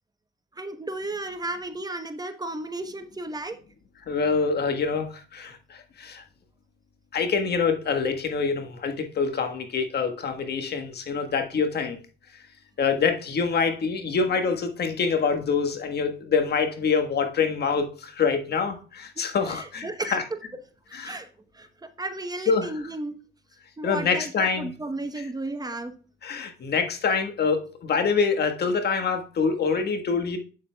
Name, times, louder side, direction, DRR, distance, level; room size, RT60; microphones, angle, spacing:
voice 1, 0.5-3.6 19.2-20.2 20.9-21.3 21.5-23.2 23.8-25.9, right 2 dB, 20° right, 1.0 m, -34 dB
voice 2, 4.1-6.2 7.1-12.0 12.8-19.8 20.1-20.2 20.9-21.2 22.5-22.7 23.8-24.7 26.2-30.4, left 5 dB, 55° left, 1.5 m, -25 dB
8.5 x 7.6 x 2.3 m
cardioid pair, 90°, 20 cm